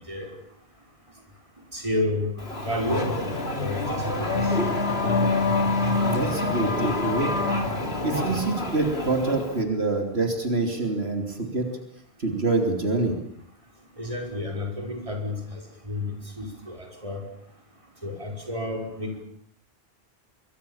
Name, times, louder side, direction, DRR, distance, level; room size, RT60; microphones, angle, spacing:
voice 1, 1.7-2.3 2.6-3.8 4.2-4.5 14.0-17.2 18.0-19.2, left 1 dB, 30° right, 2 dB, 5.6 m, -31 dB
Race car auto racing / Accelerating revving vroom, 2.4-9.6, left 2 dB, 75° left, 3.4 m, -26 dB
voice 2, 6.0-7.4 8.0-11.7 12.2-13.2, right 3 dB, 80° right, 4 dB, 3.5 m, -26 dB
26.5 x 23.5 x 7.3 m, 0.67 s
omnidirectional pair, 1.1 m